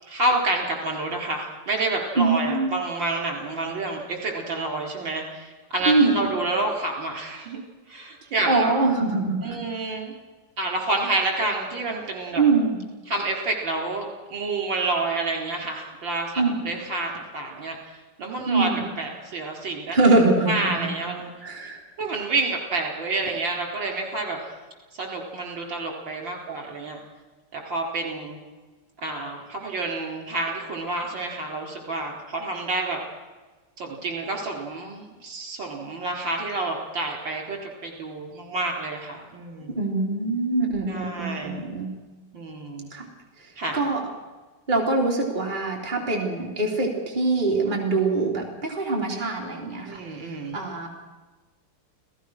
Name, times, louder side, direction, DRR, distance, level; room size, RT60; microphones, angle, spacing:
voice 1, 0.0-7.6 7.9-8.7 9.4-10.1 10.6-12.4 13.1-17.8 18.2-18.7 19.0-20.0 20.5-21.3 22.0-24.4 25.0-27.0 27.5-28.4 29.0-33.0 33.8-39.7 40.9-41.6 42.3-42.9 43.6-43.8 49.9-50.6, right 2 dB, 60° right, 1 dB, 5.1 m, -29 dB
voice 2, 2.2-2.7 5.9-6.3 8.5-9.6 12.4-12.8 16.4-16.6 18.5-18.9 19.9-20.9 21.4-21.8 39.7-42.0 42.9-43.1 43.7-44.0 44.7-50.0 50.5-50.9, right 3 dB, 20° right, -1 dB, 3.3 m, -23 dB
29.5 x 18.0 x 6.3 m, 1.3 s
omnidirectional pair, 2.4 m